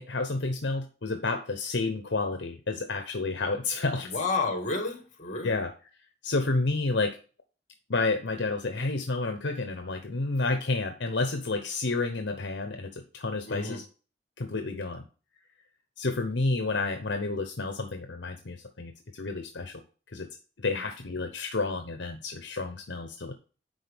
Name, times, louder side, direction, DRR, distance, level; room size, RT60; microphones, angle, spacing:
voice 1, 0.0-4.1 5.4-5.7 6.2-7.2 7.9-13.8 14.4-15.0 16.0-19.8 20.1-20.3 20.6-23.3, left 3 dB, 65° left, 0.8 m, -30 dB
voice 2, 3.9-5.6 13.5-13.8 20.7-20.8, left 3 dB, 45° left, 1.7 m, -31 dB
10.0 x 4.1 x 3.5 m
head